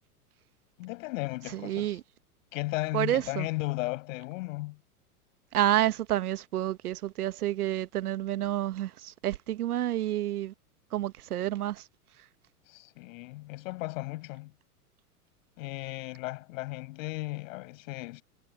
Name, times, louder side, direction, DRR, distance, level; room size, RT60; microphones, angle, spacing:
voice 1, 0.8-2.0 2.5-4.8 12.7-14.5 15.6-18.2, left 21 dB, 55° left, 6.4 m, -35 dB
voice 2, 1.6-2.0 2.9-3.5 5.5-10.5 10.9-11.8, right 13 dB, 75° right, 1.3 m, -29 dB
hypercardioid pair, 110°, 46 cm